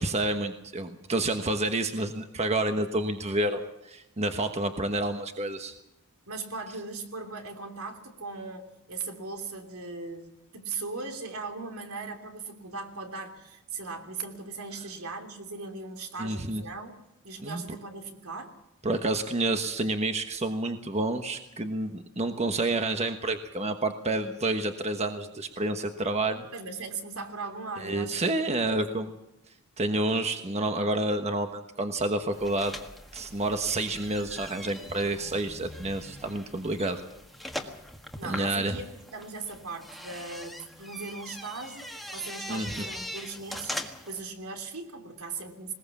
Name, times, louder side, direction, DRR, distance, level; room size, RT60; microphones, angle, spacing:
voice 1, 0.0-5.7 16.2-16.6 17.4-17.6 18.8-26.5 27.8-29.1 29.8-32.7 33.1-37.0 38.2-38.8 42.5-42.9, right 2 dB, 30° right, 7 dB, 1.2 m, -29 dB
voice 2, 6.3-16.9 17.2-18.6 26.5-29.0 38.2-41.9 42.1-43.7 44.0-45.7, right 4 dB, 75° right, 5 dB, 3.1 m, -39 dB
sound 1, 32.3-44.2, left 1 dB, ahead, 1.6 m, -41 dB
20.5 x 19.5 x 7.2 m, 0.88 s
head